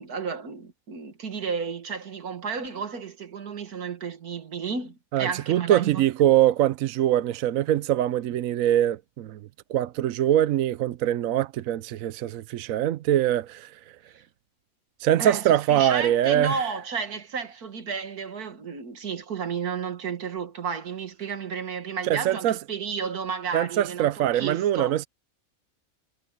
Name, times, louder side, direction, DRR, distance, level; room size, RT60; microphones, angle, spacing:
voice 1, 0.0-6.0 15.2-24.9, right 5 dB, 85° right, 2.2 m, -32 dB
voice 2, 5.1-9.4 9.7-13.7 15.0-16.6 22.0-22.6 23.5-25.0, right 12 dB, 70° right, 1.0 m, -23 dB
omnidirectional pair, 1.6 m